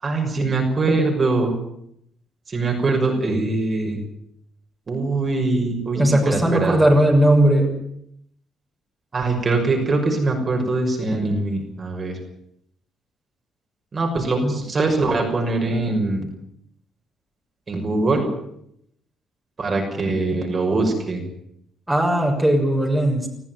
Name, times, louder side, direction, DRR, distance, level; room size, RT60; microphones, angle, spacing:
voice 1, 0.0-1.5 2.5-4.0 4.9-6.8 9.1-12.2 13.9-16.3 17.7-18.3 19.6-21.2, right 3 dB, 35° right, 2 dB, 6.2 m, -22 dB
voice 2, 5.9-7.7 14.4-14.5 21.9-23.3, right 1 dB, 5° right, 0 dB, 6.4 m, -17 dB
20.5 x 14.5 x 9.6 m, 0.74 s
cardioid pair, 90°, 0 cm